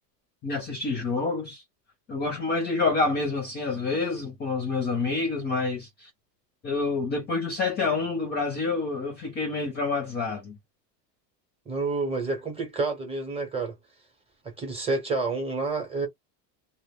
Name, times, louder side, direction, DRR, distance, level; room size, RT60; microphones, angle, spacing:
voice 1, 0.4-1.6 2.1-6.1 6.6-10.6, left 3 dB, 20° left, 0.5 m, -28 dB
voice 2, 11.7-13.8 14.4-16.1, right 3 dB, 10° right, 0.8 m, -29 dB
2.1 x 2.1 x 3.3 m
supercardioid pair, 145°, 50 cm